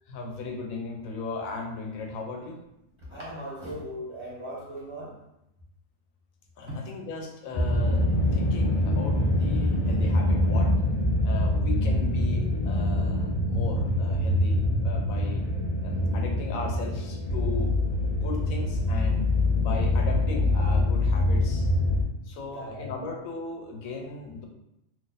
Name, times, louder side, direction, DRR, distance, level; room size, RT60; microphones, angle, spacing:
voice 1, 0.1-2.6 6.6-10.7 11.2-15.4 15.8-17.7 18.1-19.2 19.6-21.7 22.2-24.5, left 3 dB, 85° left, 2 dB, 1.1 m, -36 dB
voice 2, 3.0-5.2 22.4-22.9, equal, 25° right, -7 dB, 1.0 m, -38 dB
sound 1, 7.5-22.0, left 1 dB, 60° left, 0.3 m, -24 dB
2.9 x 2.5 x 3.9 m, 0.85 s
omnidirectional pair, 1.4 m